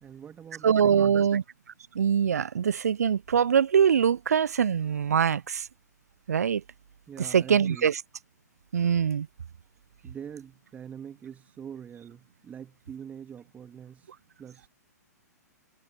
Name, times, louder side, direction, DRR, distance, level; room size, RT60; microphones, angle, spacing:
voice 1, 0.0-1.3 7.1-7.9 10.0-14.1 14.4-14.7, right 8 dB, 15° right, 2.5 m, -44 dB
voice 2, 0.6-1.4 1.9-5.6 6.3-6.6 7.2-8.0 8.7-9.3, right 7 dB, 65° right, 0.9 m, -23 dB
figure-of-eight pair, 115°, 9 cm